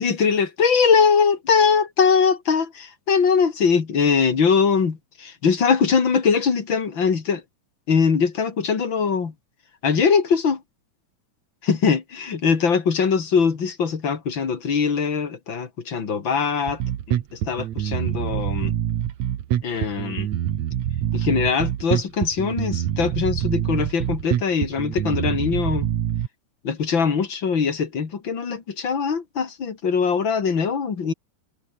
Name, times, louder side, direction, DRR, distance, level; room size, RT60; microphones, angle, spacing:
voice 1, 0.0-7.4 7.9-9.3 9.8-10.6 11.6-16.8 17.1-18.7 19.6-20.3 21.1-25.9 26.6-31.1, left 6 dB, 40° left, 3.0 m, -21 dB
Bass guitar, 16.7-26.3, right 11 dB, 65° right, 2.6 m, -25 dB
omnidirectional pair, 3.5 m